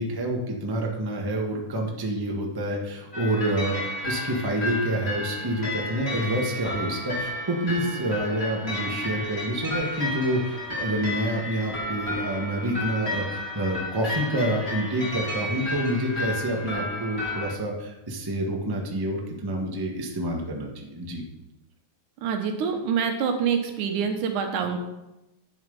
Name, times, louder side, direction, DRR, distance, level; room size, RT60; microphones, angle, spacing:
voice 1, 0.0-21.2, right 1 dB, 15° right, 0 dB, 0.7 m, -28 dB
sound 1, 3.1-17.5, left 1 dB, 20° left, 3.3 m, -32 dB
voice 2, 22.2-24.8, right 6 dB, 75° right, 5 dB, 2.7 m, -26 dB
10.5 x 7.4 x 5.4 m, 0.93 s
omnidirectional pair, 3.6 m